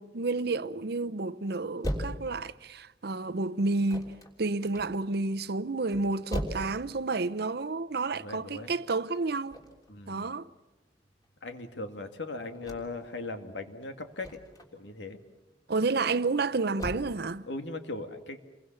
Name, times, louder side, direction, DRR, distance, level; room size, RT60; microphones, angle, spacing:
voice 1, 0.0-4.1 4.4-9.6 10.1-10.5 15.7-17.4, right 3 dB, 60° right, 0.8 m, -30 dB
sound 1, 1.8-17.0, equal, 20° left, 3.3 m, -41 dB
voice 2, 8.1-8.7 9.9-10.3 11.4-14.4 14.7-15.2 17.5-18.4, left 2 dB, 85° left, 2.3 m, -39 dB
28.0 x 23.0 x 7.0 m
head